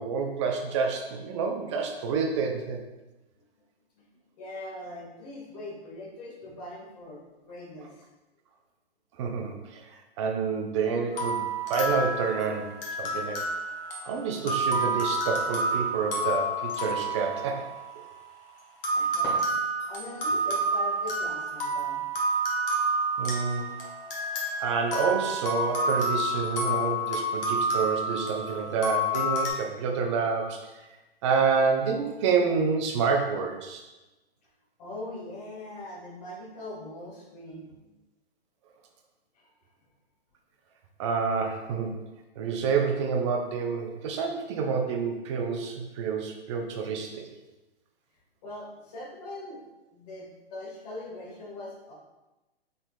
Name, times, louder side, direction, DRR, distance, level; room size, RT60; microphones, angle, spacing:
voice 1, 0.0-2.8 9.2-11.4 11.7-12.7 13.0-13.4 14.0-17.6 23.2-23.6 24.6-30.7 31.2-33.8 41.0-41.9 42.4-47.3, right 5 dB, 30° right, 3 dB, 0.5 m, -28 dB
voice 2, 4.4-8.0 18.9-19.3 19.9-22.0 34.8-37.9 39.3-39.5 48.4-49.6 49.9-51.9, left 2 dB, 40° left, -3 dB, 1.5 m, -41 dB
sound 1, 11.1-18.2 18.8-29.5, right 1 dB, 65° left, 1.2 m, -29 dB
sound 2, 18.7-20.2, left 1 dB, 5° left, 1.2 m, -43 dB
4.3 x 3.8 x 2.3 m, 1.0 s
hypercardioid pair, 130°, 31 cm